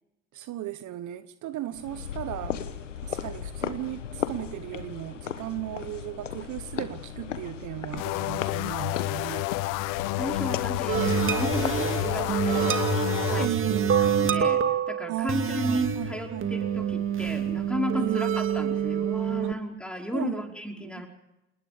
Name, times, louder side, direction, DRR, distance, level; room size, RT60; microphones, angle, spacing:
voice 1, 0.3-2.6 3.0-9.5 13.4-14.1 15.1-16.5 18.0-18.2 19.4-19.6 20.1-20.4 20.8-21.0, right 14 dB, 55° right, 12 dB, 1.3 m, -36 dB
sound 1, 1.8-12.7, left 8 dB, 90° left, 1.2 m, -36 dB
sound 2, 8.0-13.5, left 21 dB, 60° left, 0.9 m, -30 dB
voice 2, 10.2-12.7 13.3-13.5 14.0-21.1, equal, 5° left, 2 dB, 5.1 m, -34 dB
sound 3, 10.9-19.5, right 7 dB, 35° right, 2.4 m, -27 dB
28.0 x 20.5 x 5.2 m, 0.92 s
hypercardioid pair, 60°, 36 cm